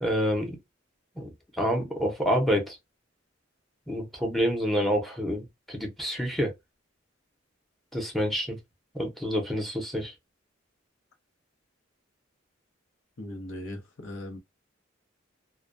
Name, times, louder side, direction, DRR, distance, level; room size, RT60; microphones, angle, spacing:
voice 1, 0.0-0.6 1.2-2.8 3.9-6.5 7.9-8.6 8.9-10.1, equal, ahead, 0.7 m, -28 dB
voice 2, 13.2-14.4, left 1 dB, 85° left, 0.8 m, -38 dB
2.2 x 2.2 x 2.5 m
head